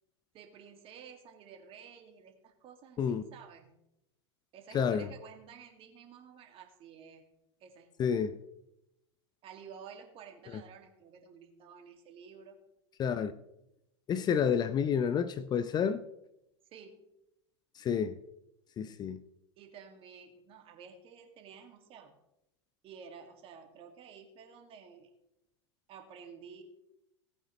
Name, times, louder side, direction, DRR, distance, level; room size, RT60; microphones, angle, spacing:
voice 1, 0.3-3.8 4.5-7.2 7.6-8.1 9.4-12.6 16.7-17.0 19.6-22.1 22.8-25.1 25.9-26.6, right 6 dB, 40° right, 2.2 m, -52 dB
voice 2, 4.7-5.1 8.0-8.4 13.0-13.3 14.1-16.0 17.8-18.2 18.8-19.2, left 7 dB, 30° left, 0.6 m, -29 dB
18.0 x 8.8 x 3.1 m
figure-of-eight pair, 90°, 15 cm